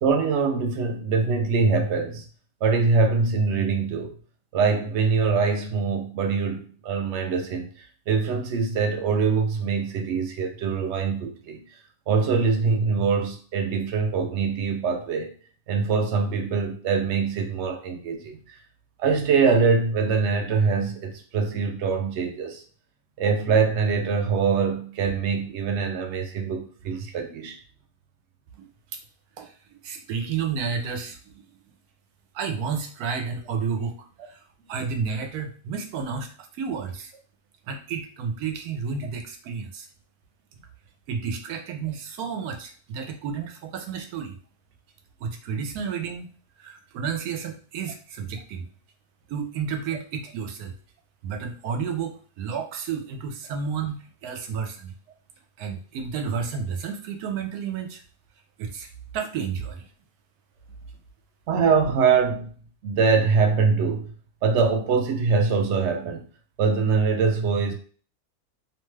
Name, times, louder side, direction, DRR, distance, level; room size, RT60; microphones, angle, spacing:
voice 1, 0.0-2.3 2.6-4.1 4.5-11.6 12.1-15.3 15.7-18.6 19.0-22.6 23.2-27.6 61.5-62.5 62.8-64.1 64.4-66.3 66.6-67.7, right 5 dB, 65° right, 0.7 m, -23 dB
voice 2, 29.4-31.4 32.3-34.4 34.7-37.1 37.7-39.9 41.1-44.4 45.2-46.3 46.6-48.7 49.3-50.7 51.2-54.9 55.6-58.0 58.6-59.9, right 6 dB, 85° right, 1.1 m, -31 dB
2.8 x 2.2 x 3.1 m
omnidirectional pair, 1.6 m